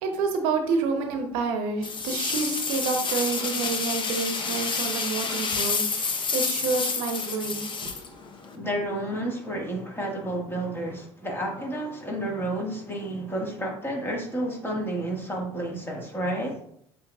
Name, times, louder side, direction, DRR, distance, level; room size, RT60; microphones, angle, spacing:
voice 1, 0.0-8.0, right 4 dB, 75° right, 0.7 m, -29 dB
sound 1, 1.8-8.5, left 4 dB, 35° left, 0.8 m, -29 dB
voice 2, 8.5-16.6, right 1 dB, 15° left, 1.6 m, -31 dB
7.7 x 2.8 x 2.3 m
hypercardioid pair, 75°, 15 cm